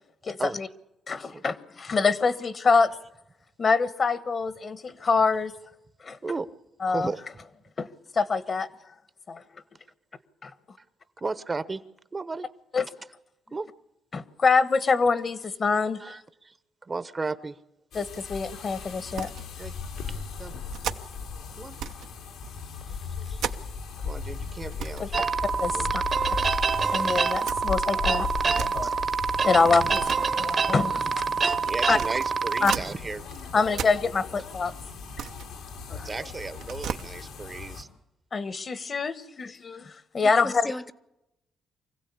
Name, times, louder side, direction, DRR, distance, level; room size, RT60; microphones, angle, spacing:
voice 1, 0.2-0.7 1.1-2.9 3.6-5.5 6.0-6.2 6.8-7.1 7.8-7.9 8.1-8.7 9.3-9.4 10.4-10.5 12.7-12.9 14.1-16.2 17.9-19.3 25.0-25.1 25.6-26.0 26.9-29.0 29.4-31.1 31.4-31.5 31.9-32.0 32.6-32.7 33.5-34.7 35.9-36.1 38.3-40.7, left 4 dB, 40° left, 1.3 m, -25 dB
voice 2, 6.9-7.2 11.2-11.8 12.1-12.5 13.5-13.7 16.0-16.6 16.8-17.6 19.6-19.7 20.4-20.5 21.6-21.8 24.0-25.3 25.7-25.9 28.8-28.9 29.3-29.9 30.3-30.7 31.3-33.6 36.0-37.9, right 3 dB, 30° right, 0.9 m, -35 dB
sound 1, 17.9-37.8, left 5 dB, 85° left, 2.8 m, -37 dB
sound 2, 19.1-19.5 19.8-20.0 20.7-21.3 21.7-22.1 22.4-24.0 24.3-24.4 24.7-25.1 25.4-26.0 26.8-28.8 29.6-32.9 33.3-34.5 34.9-36.2 36.5-37.0, right 9 dB, 80° right, 1.0 m, -37 dB
sound 3, 25.1-32.8, right 5 dB, 45° right, 1.2 m, -26 dB
voice 3, 40.2-40.9, left 1 dB, 15° left, 1.0 m, -36 dB
24.5 x 16.0 x 8.5 m
cardioid pair, 90°, 0 cm